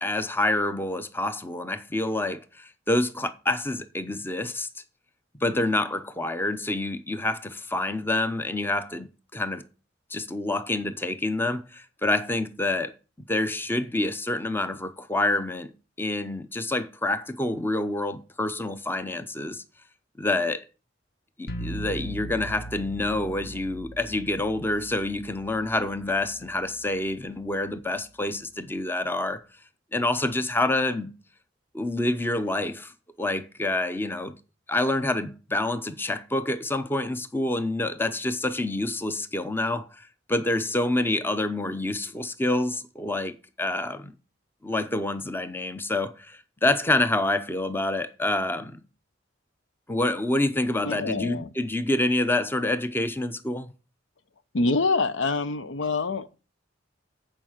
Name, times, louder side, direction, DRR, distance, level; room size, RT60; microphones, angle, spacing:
voice 1, 0.0-4.7 5.4-9.6 10.1-12.9 13.3-15.7 16.0-19.6 20.2-20.7 21.4-29.4 29.9-31.1 31.7-32.9 33.2-34.3 34.7-44.1 44.6-48.8 49.9-53.7, left 2 dB, 10° left, 0.7 m, -27 dB
sound 1, 21.5-27.2, right 1 dB, 55° left, 1.4 m, -40 dB
voice 2, 50.8-51.5 54.5-56.4, left 3 dB, 75° left, 0.8 m, -26 dB
8.9 x 5.0 x 7.3 m
head